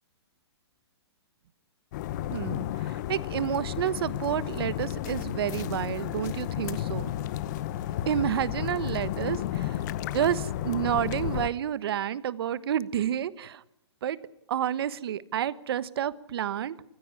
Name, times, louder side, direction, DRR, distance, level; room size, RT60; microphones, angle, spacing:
sound 1, 1.9-11.5, left 12 dB, 40° left, 0.9 m, -32 dB
voice 1, 2.3-7.1 8.1-9.8 10.1-13.6 14.0-14.2 14.5-16.8, right 10 dB, 60° right, 17 dB, 1.2 m, -30 dB
24.0 x 16.0 x 9.5 m, 0.86 s
hypercardioid pair, 145°, 14 cm